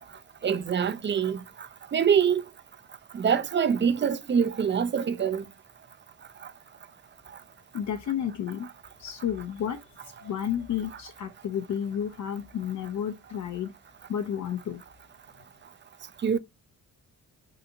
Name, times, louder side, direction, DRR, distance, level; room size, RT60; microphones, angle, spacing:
voice 1, 0.4-1.4 1.9-2.4 3.1-5.4 16.2-16.4, right 7 dB, 30° right, 0.4 m, -24 dB
voice 2, 7.7-8.7 9.0-9.8 10.0-13.7 14.1-14.8, left 9 dB, 50° left, 0.5 m, -31 dB
2.8 x 2.4 x 2.7 m
cardioid pair, 70°, 37 cm